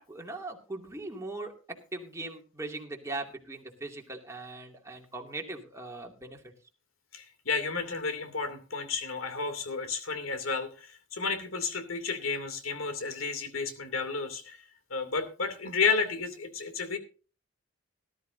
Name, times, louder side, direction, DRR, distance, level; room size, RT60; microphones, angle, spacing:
voice 1, 0.1-1.5 1.9-6.4, right 2 dB, 15° right, 1 dB, 2.4 m, -40 dB
voice 2, 7.1-14.6 14.9-17.0, left 5 dB, 80° left, 8 dB, 2.8 m, -32 dB
18.5 x 12.5 x 2.7 m, 0.35 s
head